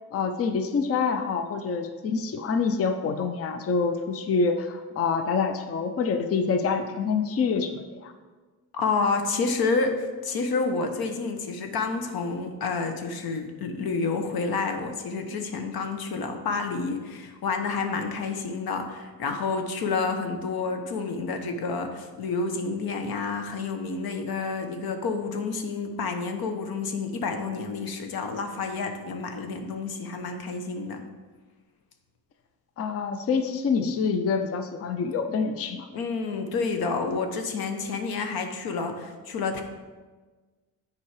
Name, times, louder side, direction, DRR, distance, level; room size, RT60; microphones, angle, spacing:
voice 1, 0.1-8.1 32.8-35.9, left 5 dB, 40° left, 7 dB, 0.5 m, -26 dB
voice 2, 8.7-31.0 35.9-39.6, left 4 dB, 80° left, 6 dB, 1.0 m, -29 dB
7.2 x 4.8 x 4.8 m, 1.3 s
cardioid pair, 120°, 36 cm